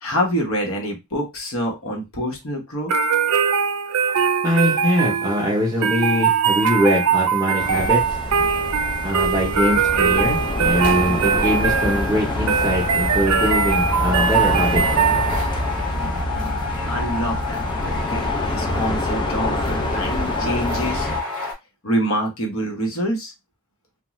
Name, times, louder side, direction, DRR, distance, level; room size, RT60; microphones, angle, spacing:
voice 1, 0.0-2.9 15.9-21.1 21.8-23.3, equal, 65° left, 1 dB, 1.0 m, -26 dB
sound 1, 2.9-15.7, right 6 dB, 80° right, 0.4 m, -21 dB
voice 2, 4.4-8.0 9.0-14.8, equal, 15° right, -3 dB, 0.7 m, -22 dB
sound 2, 7.6-21.2, left 1 dB, 20° left, 0.3 m, -26 dB
sound 3, 10.0-10.2 10.7-21.5, left 4 dB, 90° left, 0.8 m, -30 dB
2.4 x 2.3 x 3.0 m, 0.22 s
head